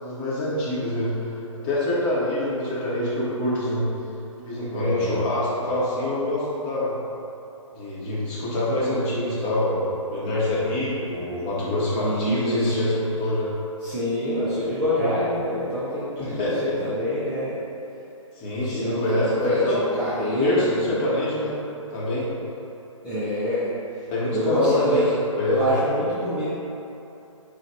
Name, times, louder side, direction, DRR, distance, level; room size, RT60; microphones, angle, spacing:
voice 1, 0.0-3.9 4.4-6.9 7.7-13.5 14.6-15.1 16.2-16.8 18.3-19.8 20.3-21.6 21.9-22.3 24.1-25.0 25.4-25.6, left 1 dB, 25° left, -8 dB, 1.0 m, -26 dB
voice 2, 4.7-5.2 12.0-12.9 13.8-17.5 18.6-21.1 23.0-23.7 24.3-25.1 25.4-26.5, left 1 dB, 5° right, -13 dB, 0.5 m, -25 dB
4.8 x 2.5 x 4.2 m, 2.9 s
figure-of-eight pair, 130°, 17 cm